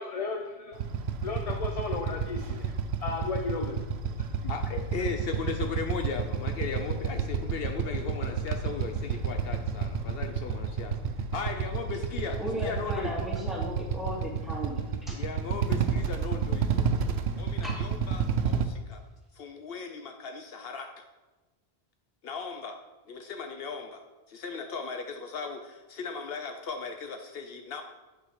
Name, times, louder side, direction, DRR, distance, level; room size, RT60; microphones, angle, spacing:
voice 1, 0.0-0.8 1.2-2.7 3.0-3.8 4.1-4.5, left 3 dB, 40° left, 2 dB, 0.6 m, -34 dB
Motorcycle / Idling, 0.7-18.6, right 6 dB, 90° right, 0.9 m, -30 dB
voice 2, 4.5-11.0 11.3-13.1 15.1-16.9 17.4-19.0 19.3-21.0 22.2-22.8 23.1-27.8, left 5 dB, 70° left, 5 dB, 0.8 m, -37 dB
voice 3, 12.4-15.2 16.8-16.9 17.6-17.8, equal, ahead, -4 dB, 2.0 m, -36 dB
8.4 x 4.9 x 4.9 m, 1.2 s
omnidirectional pair, 1.1 m